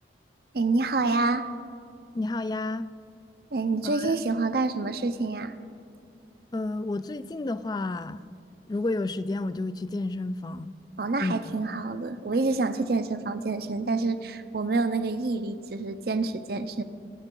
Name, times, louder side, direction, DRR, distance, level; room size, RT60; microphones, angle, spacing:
voice 1, 0.5-1.5 3.5-5.5 11.0-16.8, right 3 dB, 60° right, 10 dB, 0.6 m, -27 dB
voice 2, 2.1-2.9 3.8-4.2 6.5-8.2 8.7-10.8 11.2-11.5 11.8-11.9, left 2 dB, 25° left, 15 dB, 0.3 m, -31 dB
24.0 x 9.1 x 3.8 m, 2.3 s
head